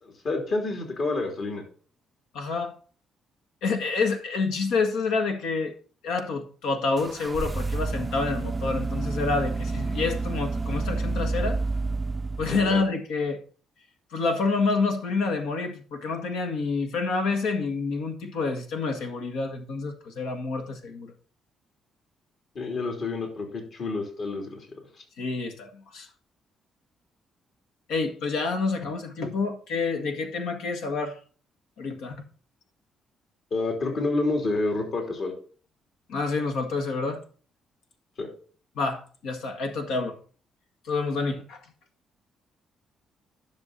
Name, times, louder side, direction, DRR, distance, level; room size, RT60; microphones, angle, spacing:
voice 1, 0.0-1.6 12.5-12.7 22.5-24.8 33.5-35.3 38.2-38.3, left 3 dB, 60° left, 3.3 m, -29 dB
voice 2, 2.3-2.8 3.6-5.7 6.0-11.6 12.4-13.4 14.1-21.1 25.2-26.1 27.9-31.2 31.8-32.2 36.1-37.2 38.8-40.2 40.9-41.6, left 4 dB, 90° left, 1.7 m, -28 dB
sound 1, 7.0-12.9, right 3 dB, 25° right, 0.4 m, -29 dB
10.5 x 6.6 x 4.1 m
cardioid pair, 90°, 0 cm